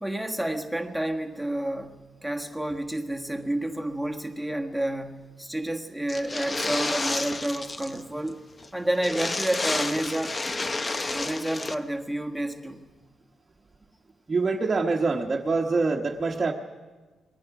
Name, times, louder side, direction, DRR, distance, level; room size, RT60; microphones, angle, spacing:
voice 1, 0.0-8.4 8.7-10.4 11.1-12.9, right 1 dB, ahead, 3 dB, 1.4 m, -30 dB
sound 1, 6.1-8.0 8.3-8.4 8.6-8.7 9.0-11.7, left 2 dB, 20° left, 0.8 m, -30 dB
voice 2, 14.3-16.5, right 3 dB, 20° right, -3 dB, 1.3 m, -25 dB
27.5 x 21.5 x 6.0 m, 1.3 s
wide cardioid pair, 175°, 0 cm